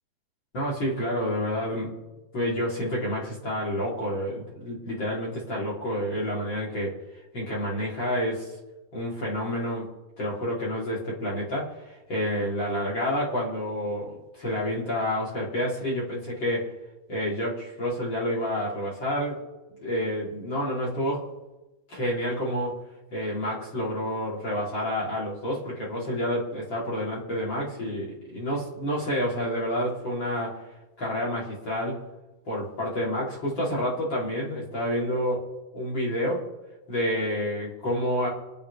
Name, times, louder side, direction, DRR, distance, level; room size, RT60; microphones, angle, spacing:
voice 1, 0.5-1.9 2.3-7.0 7.3-8.5 8.9-9.9 10.2-16.7 17.1-19.4 19.8-21.3 21.9-22.8 23.1-30.6 31.0-32.0 32.4-35.5 35.7-36.5 36.9-38.3, equal, 25° left, -5 dB, 4.2 m, -29 dB
29.0 x 10.0 x 3.7 m, 1.1 s
omnidirectional pair, 4.8 m